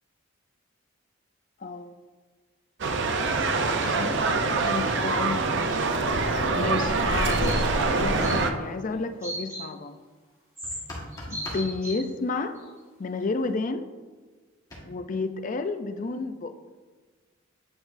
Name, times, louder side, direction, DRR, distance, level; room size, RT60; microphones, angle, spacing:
voice 1, 1.6-1.9 3.5-5.8 6.5-10.0 11.3-12.6 13.0-13.9 14.8-16.5, left 3 dB, 40° left, 9 dB, 0.4 m, -31 dB
sound 1, 2.8-8.5, right 3 dB, 60° right, 0.5 m, -25 dB
sound 2, 7.3-7.6 7.9-8.4 9.2-9.7 10.6-10.8 11.1-12.0 12.6-12.7, equal, 15° right, 2.0 m, -36 dB
sound 3, 10.6-11.7 14.7-14.8, left 1 dB, 15° left, 1.5 m, -38 dB
9.1 x 5.9 x 2.6 m, 1.4 s
head